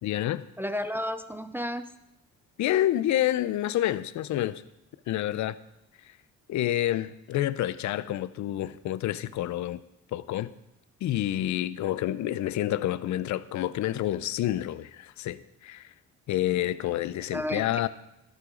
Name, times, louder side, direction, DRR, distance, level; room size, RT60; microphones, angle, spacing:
voice 1, 0.0-0.4 2.6-4.6 5.1-5.6 6.5-9.8 10.1-10.5 11.0-15.9 16.3-17.9, left 13 dB, 70° left, 0.6 m, -28 dB
voice 2, 0.6-1.9 17.3-17.9, left 1 dB, 5° right, 0.6 m, -32 dB
14.0 x 11.0 x 3.8 m
cardioid pair, 90°, 30 cm